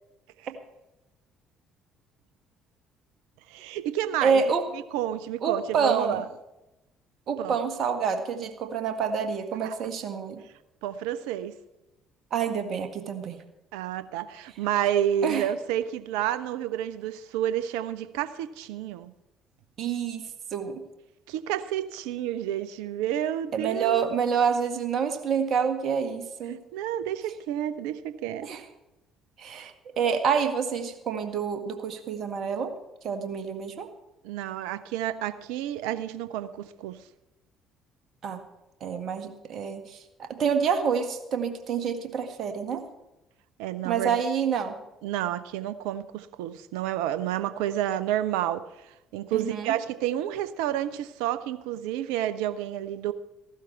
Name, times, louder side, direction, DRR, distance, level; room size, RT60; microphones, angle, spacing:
voice 1, 3.5-4.4 4.9-6.3 7.4-7.6 9.6-9.8 10.8-11.6 13.7-19.1 21.3-24.2 26.7-28.5 29.6-29.7 34.2-37.0 43.6-44.2 45.0-48.7 49.1-53.1, right 11 dB, 70° right, 0.6 m, -30 dB
voice 2, 4.2-4.6 5.4-6.2 7.3-10.4 12.3-13.4 15.2-15.5 19.8-20.3 20.5-20.8 23.5-26.6 28.4-28.6 29.4-32.7 33.0-33.9 38.2-38.4 38.8-42.8 43.8-44.8 49.3-49.8, right 6 dB, 55° right, 1.7 m, -27 dB
15.5 x 12.0 x 4.5 m
figure-of-eight pair, 50°, 0 cm